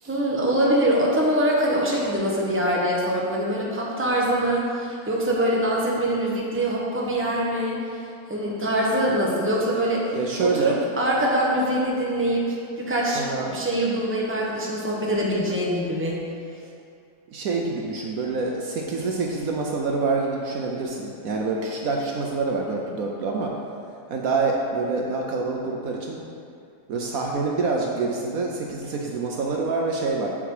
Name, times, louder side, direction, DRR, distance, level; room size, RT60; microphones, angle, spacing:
voice 1, 0.1-7.8 8.3-10.1 10.4-13.2 13.5-16.2, right 1 dB, 10° right, -4 dB, 1.1 m, -24 dB
voice 2, 10.1-10.8 13.1-13.5 17.3-23.6 24.1-26.3 26.9-30.3, right 3 dB, 65° right, 0 dB, 1.1 m, -26 dB
7.4 x 7.0 x 4.8 m, 2.4 s
omnidirectional pair, 1.7 m